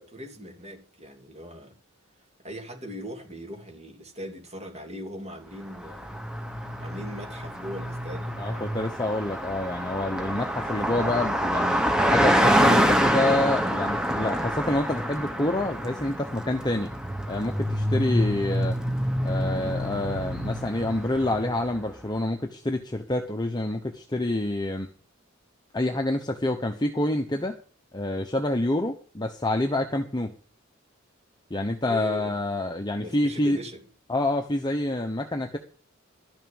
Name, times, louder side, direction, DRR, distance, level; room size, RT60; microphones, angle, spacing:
voice 1, 0.0-1.7 2.4-6.2 6.8-8.7 31.6-32.3 33.0-33.8, equal, 30° right, 3.1 m, -40 dB
Car passing by, 5.7-21.8, equal, 5° right, 1.2 m, -26 dB
voice 2, 8.4-11.8 12.1-16.9 17.3-18.8 19.2-24.9 25.7-27.6 27.9-30.3 31.5-33.6 34.1-35.6, left 1 dB, 20° left, 0.9 m, -27 dB
12.5 x 6.6 x 8.7 m
head